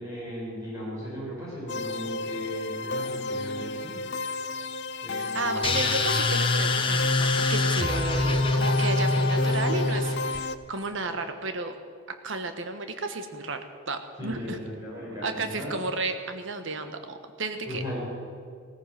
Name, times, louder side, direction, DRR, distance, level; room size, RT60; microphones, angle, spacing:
voice 1, 0.0-4.0 5.0-5.7 9.0-9.2 9.6-9.7 14.2-15.7 17.7-18.0, left 1 dB, 15° right, -7 dB, 5.6 m, -37 dB
sound 1, 1.7-10.6, left 2 dB, 55° left, 0.6 m, -32 dB
voice 2, 5.1-11.7 12.2-13.6 13.9-14.6 14.9-17.8, right 3 dB, 65° right, 7 dB, 1.3 m, -33 dB
sound 2, 5.6-10.4, left 2 dB, 25° left, 1.0 m, -25 dB
16.5 x 15.0 x 5.9 m, 2.2 s
head